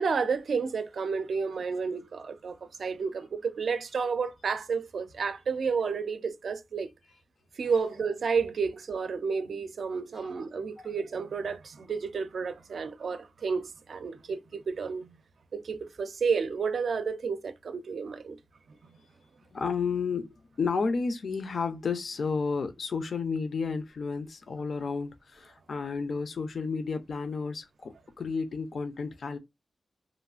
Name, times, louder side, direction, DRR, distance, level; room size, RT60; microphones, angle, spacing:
voice 1, 0.0-6.9 7.6-15.2 15.5-18.4, right 5 dB, 80° right, 0.4 m, -31 dB
voice 2, 19.5-29.4, left 5 dB, 65° left, 0.4 m, -32 dB
3.0 x 2.3 x 2.3 m
wide cardioid pair, 150°, 0 cm